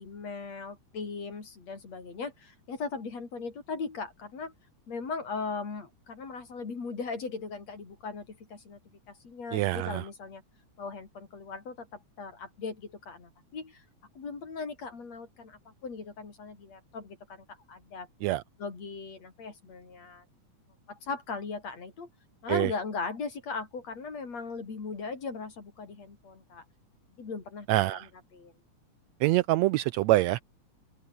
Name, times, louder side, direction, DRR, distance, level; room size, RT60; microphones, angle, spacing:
voice 1, 0.0-4.5 4.9-8.8 9.1-10.4 10.8-13.8 14.1-18.1 18.6-20.2 20.9-22.1 22.4-26.6 27.2-28.0 28.3-28.5, left 4 dB, 55° left, 5.2 m, -38 dB
voice 2, 9.5-10.0 18.2-18.4 22.5-22.7 27.7-28.1 29.2-30.4, right 17 dB, 85° right, 1.5 m, -25 dB
open air
omnidirectional pair, 3.6 m